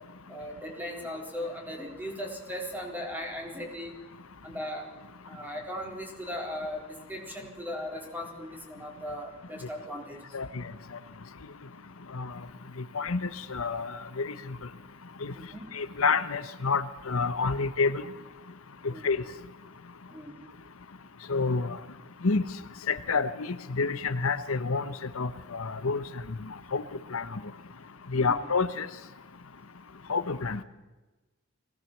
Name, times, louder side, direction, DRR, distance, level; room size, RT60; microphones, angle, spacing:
voice 1, 0.3-4.0 4.4-4.9 5.3-10.2 15.3-15.6 18.9-19.1 20.1-20.4 28.2-28.4, left 1 dB, 10° right, 1 dB, 3.9 m, -38 dB
voice 2, 12.9-14.3 15.2-15.3 15.7-18.0 18.8-19.2 21.3-21.8 22.2-22.4 22.9-26.0 26.7-26.8 27.1-27.4 28.1-28.9 30.1-30.6, left 4 dB, 80° left, 11 dB, 1.0 m, -28 dB
21.5 x 17.5 x 7.3 m, 1.1 s
head